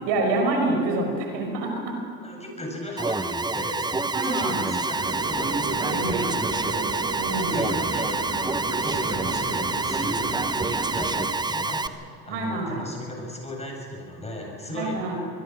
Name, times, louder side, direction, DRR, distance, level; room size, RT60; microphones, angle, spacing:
voice 1, 0.1-2.0 4.1-4.7 5.8-6.3 7.2-7.6 12.3-12.8 14.7-15.2, right 2 dB, 60° right, 2 dB, 5.4 m, -27 dB
voice 2, 2.2-15.0, left 1 dB, 15° left, 0 dB, 7.8 m, -36 dB
Alarm, 3.0-11.9, right 3 dB, 10° right, 0.8 m, -27 dB
sound 1, 5.0-11.3, right 3 dB, 30° right, 4.2 m, -34 dB
24.5 x 21.5 x 6.2 m, 2.2 s
hypercardioid pair, 90°, 49 cm